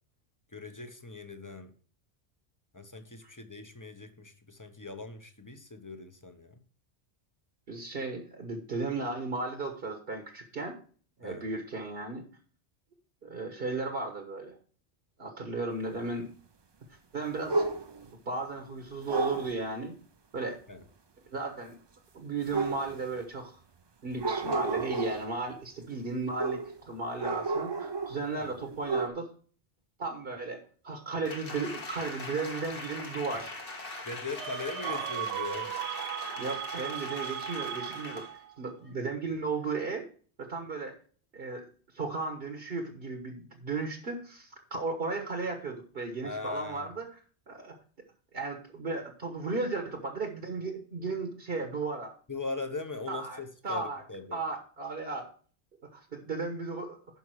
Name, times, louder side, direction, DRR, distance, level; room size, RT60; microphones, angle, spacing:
voice 1, 0.5-1.7 2.7-6.6 11.2-11.5 20.7-20.8 28.3-28.5 33.3-33.4 34.0-35.7 46.2-46.9 52.3-54.4, left 3 dB, 20° left, 0.8 m, -40 dB
voice 2, 7.7-10.8 11.2-12.3 13.2-14.5 15.2-16.3 17.1-17.6 18.3-20.0 20.3-20.6 21.3-21.7 22.1-23.6 24.0-29.3 30.0-33.5 34.8-35.1 36.4-38.3 38.6-40.1 40.4-41.0 41.3-41.6 41.9-47.1 47.5-47.8 48.3-52.1 53.1-54.0 54.3-55.3 55.9-57.0, right 3 dB, 60° right, 1.5 m, -35 dB
sound 1, 17.5-18.1 19.1-19.5 22.5-23.2 24.1-25.3 26.4-26.8 27.2-28.3 28.6-29.1, right 3 dB, 30° right, 0.5 m, -31 dB
Applause, 31.2-38.4 38.8-38.9, left 2 dB, 55° left, 1.6 m, -42 dB
sound 2, 34.4-38.5, right 12 dB, 80° right, 0.9 m, -37 dB
11.0 x 5.4 x 4.7 m
omnidirectional pair, 1.1 m